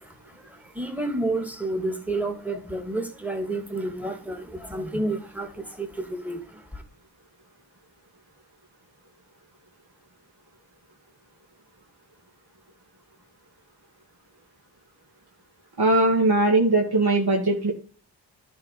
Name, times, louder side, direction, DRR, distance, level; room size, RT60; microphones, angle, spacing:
voice 1, 0.0-6.8, right 2 dB, 5° right, 2.1 m, -30 dB
voice 2, 15.8-17.7, right 2 dB, 55° right, 2.1 m, -20 dB
10.5 x 3.6 x 5.7 m
supercardioid pair, 40°, 46 cm